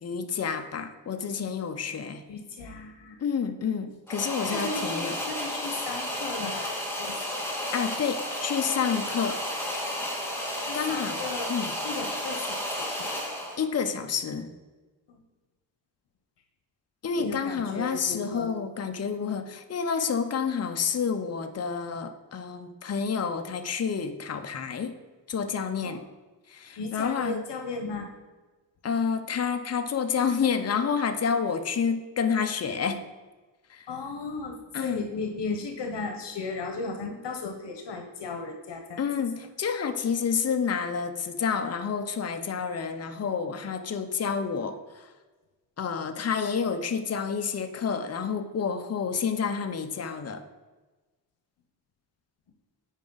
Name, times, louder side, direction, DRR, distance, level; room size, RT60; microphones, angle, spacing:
voice 1, 0.0-2.2 3.2-5.2 7.7-9.4 10.7-11.2 11.5-11.8 13.6-14.5 17.0-25.0 25.3-26.0 26.5-27.4 28.8-33.0 33.7-33.9 34.7-35.0 39.0-45.1 45.8-50.4, left 6 dB, 40° left, 8 dB, 0.7 m, -29 dB
voice 2, 2.3-3.2 4.5-6.7 7.0-7.4 10.6-11.5 11.8-13.1 15.1-15.2 17.1-18.5 25.8-26.0 26.8-28.1 33.9-34.5 34.8-39.0, left 4 dB, 80° left, 4 dB, 1.0 m, -35 dB
sound 1, 4.1-13.6, left 1 dB, 5° left, 1.8 m, -32 dB
9.2 x 5.0 x 3.9 m, 1.3 s
cardioid pair, 100°, 42 cm